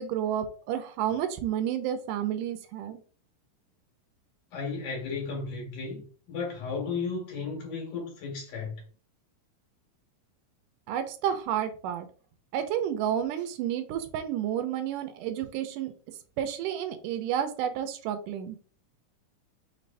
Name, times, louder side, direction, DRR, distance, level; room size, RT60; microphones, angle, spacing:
voice 1, 0.0-3.0 10.9-12.1 12.5-15.9 16.4-18.6, right 10 dB, 85° right, 8 dB, 2.2 m, -30 dB
voice 2, 4.5-8.8, left 4 dB, 70° left, -2 dB, 3.3 m, -34 dB
6.0 x 3.3 x 2.6 m, 0.40 s
omnidirectional pair, 3.7 m